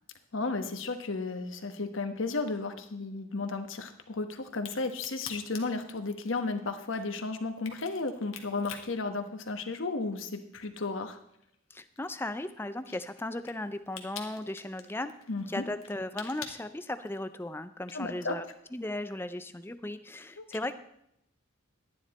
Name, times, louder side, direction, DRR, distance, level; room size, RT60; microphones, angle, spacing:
voice 1, 0.3-11.2 15.3-15.6 17.9-18.4 20.4-20.5, left 3 dB, 70° left, 7 dB, 1.1 m, -34 dB
Crack, 4.5-10.0 10.4-17.4, left 7 dB, 90° left, 1.4 m, -47 dB
voice 2, 11.7-15.1 15.5-18.4 18.7-20.8, left 1 dB, 10° left, 11 dB, 0.4 m, -36 dB
11.5 x 10.0 x 4.2 m, 0.77 s
head